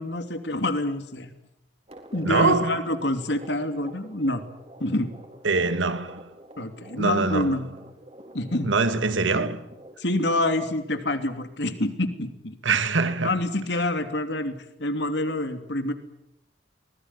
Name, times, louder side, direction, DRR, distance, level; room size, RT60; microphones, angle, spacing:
voice 1, 0.0-1.3 2.1-4.4 4.8-5.1 6.6-7.7 8.3-8.7 10.0-12.5 13.2-15.9, left 1 dB, 65° left, 3.0 m, -27 dB
sound 1, 1.9-10.0, right 1 dB, 35° right, 4.0 m, -47 dB
voice 2, 2.2-2.9 5.4-6.3 7.0-7.6 8.6-9.7 12.6-13.3, right 3 dB, 85° right, 1.9 m, -23 dB
24.5 x 20.5 x 9.9 m
head